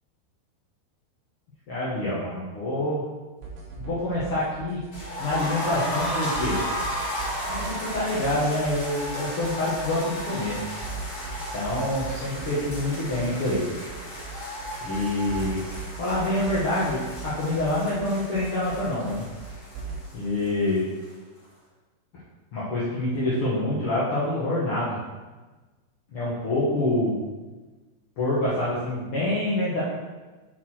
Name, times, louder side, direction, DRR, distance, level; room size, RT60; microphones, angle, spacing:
voice 1, 1.7-3.0 3.8-4.8 5.2-6.6 7.5-10.6 11.5-13.6 14.8-15.6 16.0-19.3 20.1-20.8 22.5-25.0 26.1-27.1 28.2-29.8, left 1 dB, 70° left, -10 dB, 1.3 m, -26 dB
sound 1, 3.4-20.0, right 4 dB, 90° right, 4.0 m, -39 dB
sound 2, 4.9-20.8 21.0-21.1 21.4-21.5, equal, 35° left, 2.7 m, -34 dB
8.1 x 4.5 x 4.4 m, 1.2 s
omnidirectional pair, 4.9 m